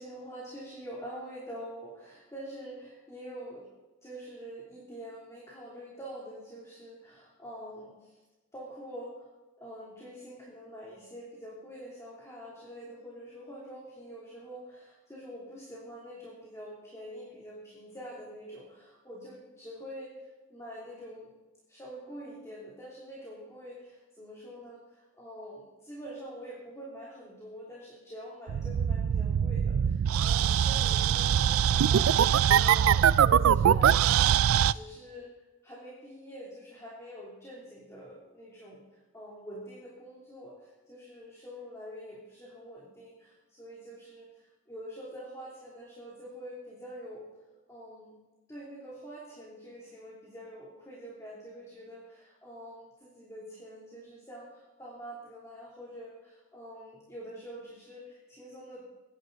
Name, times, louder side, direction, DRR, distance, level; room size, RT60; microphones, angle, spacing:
voice 1, 0.0-3.7 4.0-8.2 8.5-9.3 9.6-21.3 21.7-32.9 33.2-34.2 34.7-35.3 35.6-47.3 47.7-48.1 48.5-58.8, equal, 15° left, -5 dB, 3.1 m, -45 dB
sound 1, 28.5-34.7, right 9 dB, 75° right, 0.3 m, -23 dB
22.0 x 11.0 x 4.0 m, 1.1 s
head